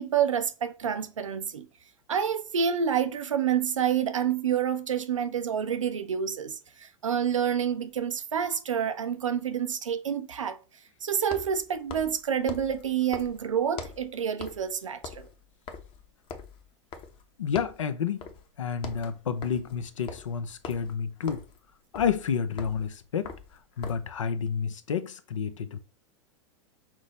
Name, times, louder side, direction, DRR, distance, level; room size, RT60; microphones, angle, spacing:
voice 1, 0.0-1.7 2.1-10.6 11.0-15.3, right 8 dB, 85° right, 0.6 m, -28 dB
sound 1, 7.9-8.0 11.2-14.1 14.4-14.7 15.0-17.3 17.5-17.9 18.2-18.5 18.7-24.1, left 4 dB, 35° left, 0.8 m, -43 dB
voice 2, 17.4-18.2 18.6-21.4 21.9-23.3 23.8-25.8, left 7 dB, 80° left, 0.6 m, -30 dB
5.9 x 2.0 x 4.0 m
hypercardioid pair, 100°, 16 cm